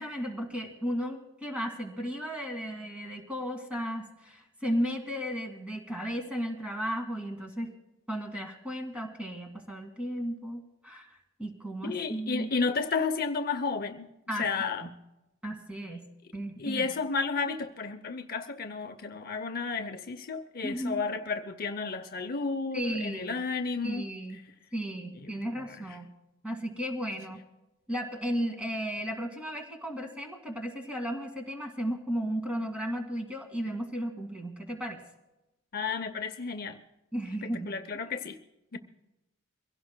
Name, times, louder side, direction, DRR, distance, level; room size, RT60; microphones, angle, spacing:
voice 1, 0.0-7.7 8.1-11.1 11.4-12.5 14.3-14.5 14.8-14.9 15.4-16.1 16.3-16.9 20.6-21.0 22.7-23.4 23.8-24.4 24.7-26.1 26.4-27.4 27.9-35.0 37.1-37.7, equal, 5° right, 3 dB, 2.0 m, -34 dB
voice 2, 11.8-14.1 14.4-14.9 16.6-24.1 25.2-25.3 25.6-25.8 35.7-36.8 37.4-38.4 38.7-38.8, left 4 dB, 45° left, 8 dB, 0.7 m, -32 dB
24.0 x 16.5 x 2.2 m, 0.96 s
head